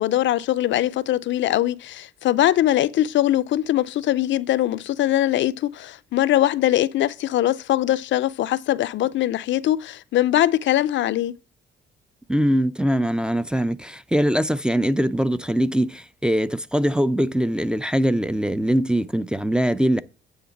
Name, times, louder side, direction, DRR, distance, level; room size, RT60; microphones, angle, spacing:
voice 1, 0.0-11.3, left 13 dB, 70° left, 0.5 m, -21 dB
voice 2, 12.3-20.0, equal, 5° right, 0.5 m, -22 dB
9.3 x 3.8 x 7.1 m
cardioid pair, 90°, 20 cm